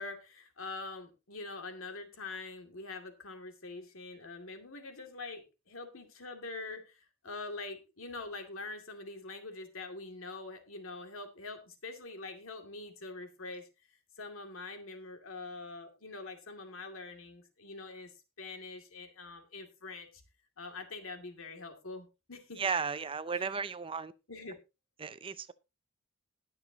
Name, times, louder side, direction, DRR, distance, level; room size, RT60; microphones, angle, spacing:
voice 1, 0.0-13.7 14.2-20.2 20.6-22.7 23.3-23.5 24.3-24.6, left 3 dB, 75° left, 2.5 m, -44 dB
voice 2, 22.6-24.1 25.0-25.5, right 5 dB, 25° right, 0.5 m, -34 dB
20.5 x 6.9 x 2.9 m
head